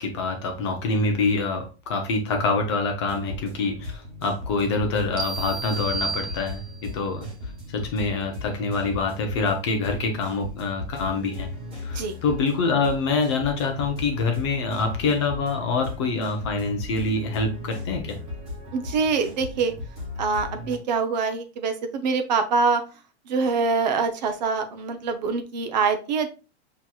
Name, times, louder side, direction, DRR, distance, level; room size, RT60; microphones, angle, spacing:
voice 1, 0.0-7.3 7.7-11.5 11.8-18.2, left 3 dB, 25° left, 4 dB, 0.4 m, -26 dB
sound 1, 3.0-20.8, left 3 dB, 20° right, 1.4 m, -37 dB
sound 2, 5.2-7.0, right 4 dB, 70° right, 1.0 m, -32 dB
voice 2, 18.7-19.7 20.2-22.8 23.3-26.3, right 4 dB, 40° right, 8 dB, 0.4 m, -24 dB
5.9 x 2.9 x 2.2 m, 0.32 s
supercardioid pair, 175°, 34 cm